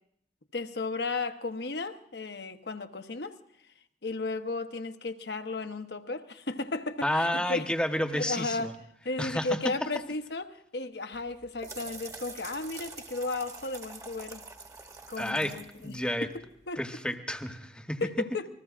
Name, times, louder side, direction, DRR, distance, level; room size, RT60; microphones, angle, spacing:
voice 1, 0.5-3.3 4.0-7.7 8.1-8.7 9.0-14.4 15.1-16.8 18.0-18.5, left 3 dB, 65° left, 1.0 m, -34 dB
voice 2, 7.0-8.7 9.2-9.5 15.2-15.5 15.8-16.3 16.8-18.0, left 1 dB, 5° left, 1.0 m, -30 dB
sound 1, 11.1-16.7, right 3 dB, 20° right, 1.1 m, -46 dB
28.5 x 20.5 x 2.5 m
head